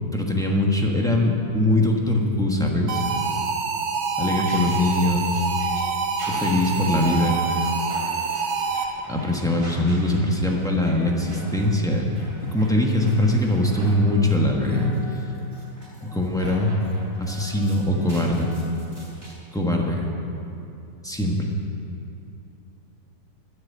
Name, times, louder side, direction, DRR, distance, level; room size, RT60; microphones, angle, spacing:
voice 1, 0.1-3.0 4.2-5.2 6.3-7.4 9.1-12.1 12.4-14.9 16.0-16.7 17.2-18.5 19.5-20.1 21.0-21.5, left 1 dB, ahead, -1 dB, 1.0 m, -22 dB
sound 1, 2.9-9.2, right 5 dB, 65° right, 1.4 m, -26 dB
sound 2, 4.4-19.3, right 1 dB, 35° right, 3.1 m, -44 dB
12.0 x 6.8 x 9.4 m, 2.7 s
omnidirectional pair, 1.9 m